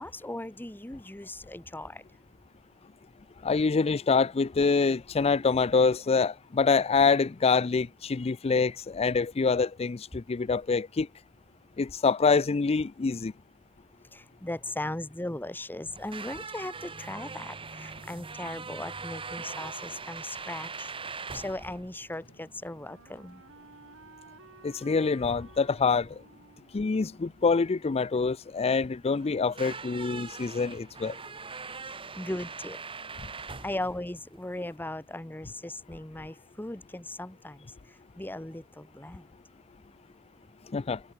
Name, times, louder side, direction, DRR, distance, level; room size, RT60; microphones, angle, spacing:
voice 1, 0.0-2.0 14.1-20.9 21.3-23.4 32.2-32.8 33.6-37.6 38.2-39.2, left 1 dB, 10° left, 1.1 m, -38 dB
voice 2, 3.4-11.1 11.8-13.3 24.6-26.2 26.7-31.1 40.7-41.0, left 4 dB, 25° left, 0.4 m, -25 dB
sound 1, 15.8-34.8, right 4 dB, 25° right, 1.2 m, -42 dB
sound 2, 16.3-24.0, left 2 dB, 70° left, 6.6 m, -65 dB
Wind instrument woodwind instrument, 21.7-28.6, right 4 dB, 60° right, 2.8 m, -56 dB
head